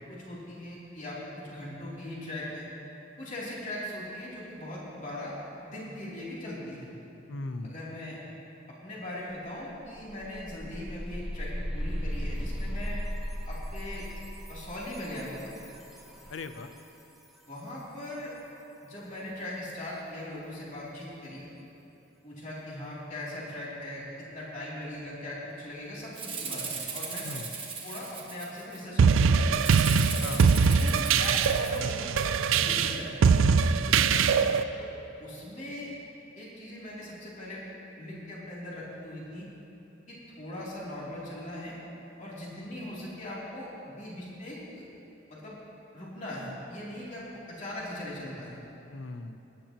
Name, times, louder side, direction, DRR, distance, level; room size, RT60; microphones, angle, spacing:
voice 1, 0.1-2.7 3.2-6.9 7.6-8.2 8.8-13.0 13.5-14.0 14.5-15.5 17.5-18.3 18.8-21.4 22.2-24.0 24.3-27.3 27.8-29.5 30.6-33.1 34.8-34.9 35.2-35.9 36.4-37.6 38.0-39.5 40.1-41.8 42.2-43.7 44.0-44.6 45.3-45.6 45.9-48.6, left 1 dB, 40° left, -7 dB, 2.9 m, -40 dB
voice 2, 7.3-7.8 16.3-16.7 27.2-27.5 30.2-30.5 34.1-34.3 48.9-49.4, left 3 dB, 65° left, 9 dB, 0.6 m, -38 dB
sound 1, 9.3-9.4 9.7-16.5, equal, ahead, 1.3 m, -36 dB
Rattle (instrument), 26.1-28.8 29.6-31.8, right 5 dB, 25° right, 1.3 m, -37 dB
sound 2, 29.0-34.6, right 5 dB, 80° right, 0.4 m, -22 dB
19.5 x 10.0 x 2.9 m, 2.9 s
head